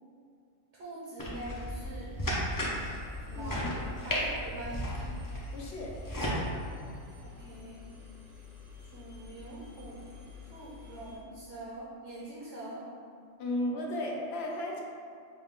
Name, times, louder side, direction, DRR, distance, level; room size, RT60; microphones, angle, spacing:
voice 1, 0.7-2.3 3.3-4.9 7.2-7.9 8.8-10.1 10.5-12.9, right 1 dB, 60° right, -6 dB, 0.9 m, -44 dB
sound 1, 1.2-6.4, equal, 30° left, 0.3 m, -35 dB
Engine, 2.4-11.2, left 6 dB, 80° right, 1.5 m, -50 dB
voice 2, 3.3-3.7 5.5-5.9 13.4-14.8, left 1 dB, 60° left, -1 dB, 0.8 m, -34 dB
5.1 x 2.3 x 3.6 m, 2.3 s
omnidirectional pair, 1.4 m